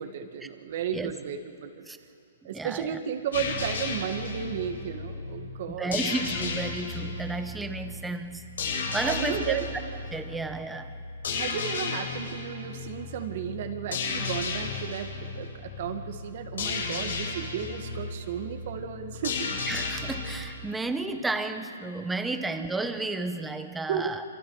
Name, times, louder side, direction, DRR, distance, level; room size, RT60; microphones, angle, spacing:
voice 1, 0.0-1.8 2.4-6.0 9.0-9.7 11.3-19.5 23.9-24.2, right 8 dB, 50° right, 7 dB, 1.8 m, -34 dB
voice 2, 2.5-3.0 5.8-9.6 10.1-10.9 19.7-24.2, right 3 dB, 5° right, 8 dB, 1.0 m, -32 dB
sound 1, 3.3-20.4, left 4 dB, 80° left, 7.9 m, -34 dB
27.0 x 26.0 x 4.9 m, 2.6 s
hypercardioid pair, 160°, 0 cm